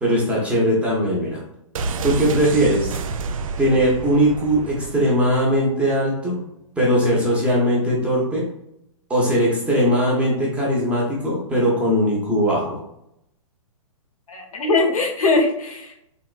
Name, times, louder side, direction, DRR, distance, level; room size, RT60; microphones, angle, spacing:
voice 1, 0.0-1.4 2.0-2.9 3.6-6.4 6.8-8.5 9.1-12.8, equal, 5° right, -5 dB, 0.7 m, -20 dB
sound 1, 1.7-5.5 5.8-5.9, right 4 dB, 75° right, 0.4 m, -29 dB
voice 2, 14.3-16.1, left 3 dB, 90° left, 2 dB, 0.9 m, -21 dB
3.5 x 2.8 x 2.3 m, 0.79 s
hypercardioid pair, 145°, 18 cm